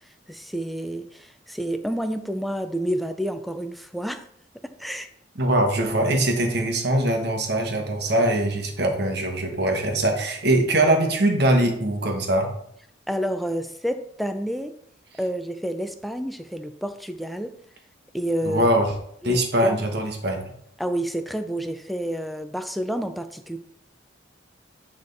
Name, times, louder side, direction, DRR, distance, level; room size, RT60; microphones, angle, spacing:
voice 1, 0.3-4.2 4.6-5.1 13.1-14.7 15.2-17.5 18.1-18.7 19.2-19.8 20.8-23.6, equal, ahead, 8 dB, 0.4 m, -29 dB
voice 2, 5.4-12.5 18.4-18.9 19.2-20.4, right 1 dB, 60° right, 3 dB, 1.2 m, -22 dB
8.7 x 3.5 x 4.0 m, 0.69 s
head